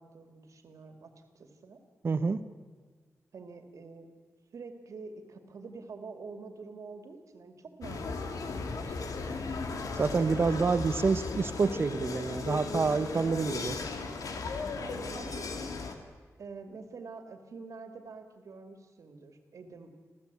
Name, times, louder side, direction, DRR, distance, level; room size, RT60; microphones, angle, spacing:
voice 1, 0.0-1.8 3.3-4.1 4.5-9.6 10.2-10.7 14.7-15.9 16.4-19.9, right 4 dB, 70° right, 6 dB, 2.3 m, -47 dB
voice 2, 2.0-2.4 10.0-13.8, right 4 dB, 40° right, 12 dB, 1.0 m, -28 dB
sound 1, 7.8-16.0, left 4 dB, 90° left, 2.2 m, -36 dB
27.0 x 15.0 x 8.4 m, 1.5 s
wide cardioid pair, 155°, 6 cm